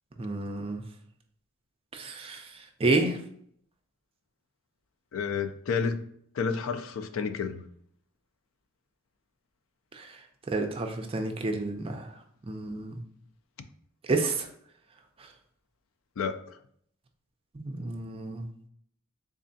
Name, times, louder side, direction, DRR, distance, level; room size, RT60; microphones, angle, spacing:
voice 1, 0.2-0.8 1.9-2.5 2.8-3.2 9.9-10.1 10.5-12.1 12.5-13.0 14.1-14.5 17.5-18.5, right 2 dB, 25° right, 4 dB, 0.5 m, -30 dB
voice 2, 5.1-6.1 6.3-7.6 16.2-16.6, left 5 dB, 65° left, 9 dB, 0.4 m, -30 dB
3.6 x 3.2 x 2.6 m, 0.66 s
head